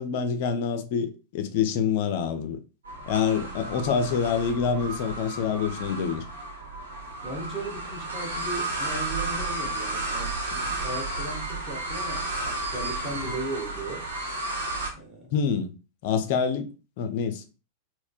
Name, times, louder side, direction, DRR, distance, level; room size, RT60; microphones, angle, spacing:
voice 1, 0.0-2.6 3.1-6.2 10.5-10.6 15.3-15.7 16.0-17.4, left 6 dB, 50° left, 0.4 m, -26 dB
sound 1, 2.8-14.9, right 2 dB, 70° right, 1.0 m, -32 dB
voice 2, 7.2-10.4 10.8-14.1 14.9-15.3, right 2 dB, 15° right, 1.4 m, -36 dB
4.1 x 2.1 x 2.4 m
figure-of-eight pair, 90°, 0 cm